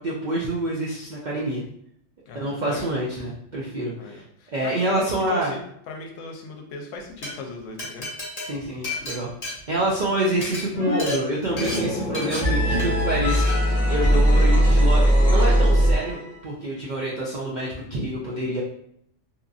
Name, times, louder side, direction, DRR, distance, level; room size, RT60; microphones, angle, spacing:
voice 1, 0.0-1.6 2.3-4.2 4.5-5.5 8.4-9.3 9.7-15.0 15.3-16.2 16.4-18.6, right 1 dB, 65° right, -5 dB, 0.4 m, -27 dB
voice 2, 2.3-2.9 4.0-8.1 14.1-14.6, left 3 dB, 80° left, 2 dB, 0.9 m, -37 dB
Glass, 7.0-7.3 7.8-10.1 10.3-10.6 11.0-11.2 11.6-11.8 12.1-12.4 12.8-13.0 13.3-13.5, left 2 dB, 35° left, 1.0 m, -32 dB
sound 1, 10.7-11.1 11.4-16.3, equal, 5° left, 0.8 m, -20 dB
2.8 x 2.5 x 2.3 m, 0.70 s
omnidirectional pair, 1.3 m